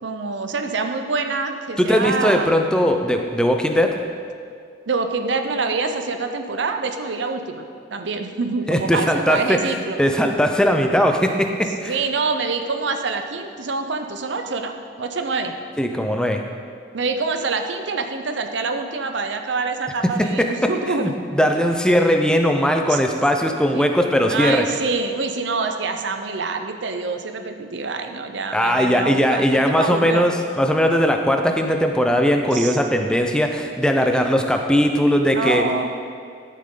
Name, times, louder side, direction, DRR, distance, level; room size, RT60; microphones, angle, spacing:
voice 1, 0.0-2.5 4.9-7.7 7.9-10.0 11.9-15.5 16.9-21.1 22.9-23.0 23.7-23.8 24.3-30.3 32.5-32.8 34.2-34.3 35.3-35.9, right 4 dB, 70° right, 6 dB, 0.7 m, -26 dB
voice 2, 1.8-4.0 8.7-11.9 15.8-16.4 20.0-24.7 28.5-35.6, equal, 5° left, 4 dB, 0.6 m, -19 dB
12.5 x 7.5 x 3.8 m, 2.3 s
head